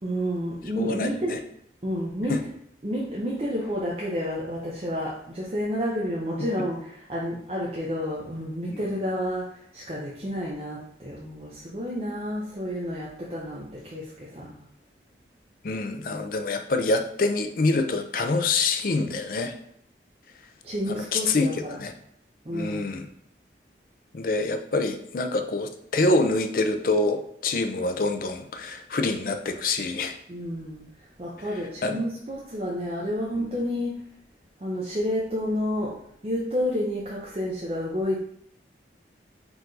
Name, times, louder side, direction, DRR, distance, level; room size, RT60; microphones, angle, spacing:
voice 1, 0.0-1.4 1.8-2.5 2.8-14.5 20.6-21.8 22.4-23.0 30.3-34.0 34.6-35.9 36.2-38.2, equal, 35° right, -5 dB, 0.6 m, -30 dB
voice 2, 0.8-1.4 2.3-2.4 8.7-8.8 15.6-19.6 20.9-21.9 22.5-23.0 24.1-30.2 31.8-32.0, left 3 dB, 50° left, 7 dB, 0.4 m, -26 dB
4.6 x 2.5 x 3.8 m, 0.69 s
head